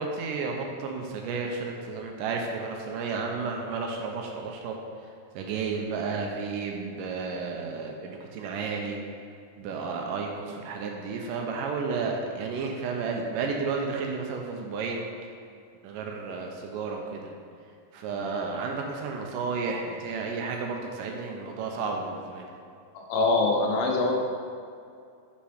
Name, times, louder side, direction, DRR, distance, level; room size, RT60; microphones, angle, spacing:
voice 1, 0.0-4.8 5.3-9.0 9.6-15.1 15.8-17.3 17.9-22.5, right 4 dB, 80° right, 1 dB, 2.2 m, -32 dB
voice 2, 22.9-24.1, left 3 dB, 80° left, 0 dB, 2.6 m, -24 dB
6.3 x 5.7 x 4.9 m, 2.4 s
omnidirectional pair, 4.0 m